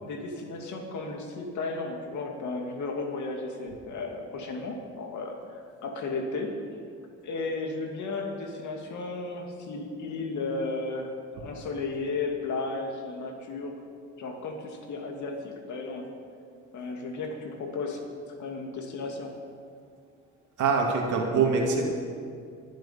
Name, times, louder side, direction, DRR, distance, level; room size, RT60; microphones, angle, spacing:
voice 1, 0.0-6.5 7.2-13.7 14.2-16.1 16.7-18.0 18.4-19.3, left 3 dB, 75° left, 2 dB, 2.4 m, -34 dB
voice 2, 20.6-21.8, right 5 dB, 80° right, 0 dB, 2.4 m, -24 dB
23.0 x 7.8 x 5.7 m, 2.3 s
cardioid pair, 90°, 30 cm